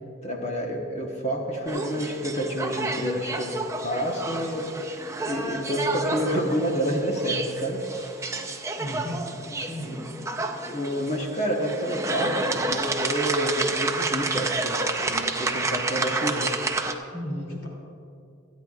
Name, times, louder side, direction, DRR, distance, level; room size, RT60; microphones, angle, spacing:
voice 1, 0.2-4.9 5.2-8.6 9.6-9.7 10.7-16.5, equal, 35° left, 0 dB, 1.1 m, -29 dB
sound 1, 1.7-16.9, right 3 dB, 15° right, 0.6 m, -30 dB
voice 2, 8.8-9.3 9.6-10.1 17.1-17.7, equal, 65° left, -1 dB, 2.8 m, -34 dB
26.5 x 9.4 x 2.4 m, 2.6 s
head